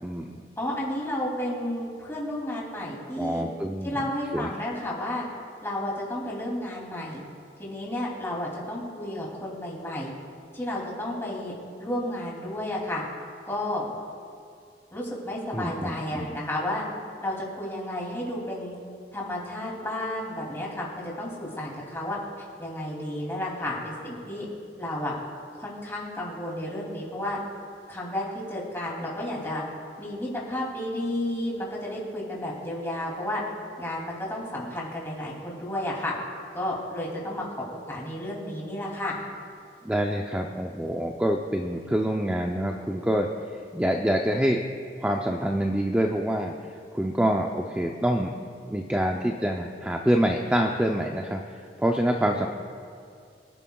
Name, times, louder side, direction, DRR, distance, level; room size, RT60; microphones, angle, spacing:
voice 1, 0.0-0.4 3.2-3.9 4.3-4.5 15.5-16.4 39.8-43.3 43.7-44.6 45.0-46.5 46.9-48.3 48.7-52.5, equal, 10° right, 2 dB, 0.5 m, -26 dB
voice 2, 0.6-3.4 3.8-5.2 5.6-7.2 7.6-10.1 10.5-11.5 11.8-13.0 13.5-13.9 14.9-16.8 17.2-18.7 19.1-22.2 22.6-24.5 24.8-25.1 25.6-27.4 27.9-29.6 30.0-33.4 33.8-36.1 36.5-37.4 37.9-39.2, left 1 dB, 15° left, -4 dB, 2.8 m, -32 dB
25.5 x 11.0 x 2.3 m, 2.3 s
head